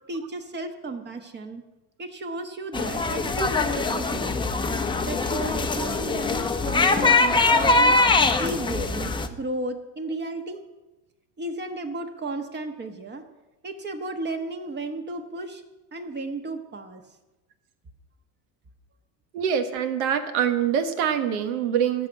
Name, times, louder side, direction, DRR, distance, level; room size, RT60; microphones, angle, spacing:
voice 1, 0.0-1.6 2.0-4.4 5.1-7.9 8.4-10.6 11.4-13.2 13.6-15.6 15.9-17.0, right 2 dB, 25° right, 6 dB, 1.2 m, -34 dB
sound 1, 2.7-9.3, left 3 dB, 10° left, 0.7 m, -22 dB
voice 2, 19.3-22.1, right 8 dB, 80° right, 8 dB, 1.5 m, -24 dB
14.0 x 6.1 x 8.0 m, 1.1 s
supercardioid pair, 115°, 42 cm